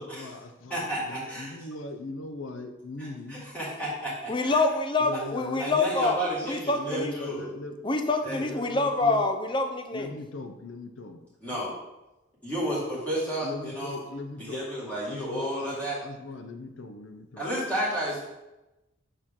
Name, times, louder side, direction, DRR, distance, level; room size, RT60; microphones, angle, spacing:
voice 1, 0.0-3.5 5.0-5.7 6.8-7.8 8.4-9.3 9.9-11.2 13.4-14.6 15.0-17.5, left 2 dB, 80° left, 7 dB, 0.6 m, -39 dB
voice 2, 0.7-1.5 3.3-4.6 5.6-7.5 8.2-8.5 11.4-11.7 12.4-14.0 14.4-16.0 17.4-18.3, equal, 5° left, -9 dB, 2.0 m, -32 dB
voice 3, 4.3-6.2 6.4-7.1 7.8-10.1, left 3 dB, 25° left, 5 dB, 0.5 m, -26 dB
6.6 x 4.5 x 3.7 m, 0.99 s
head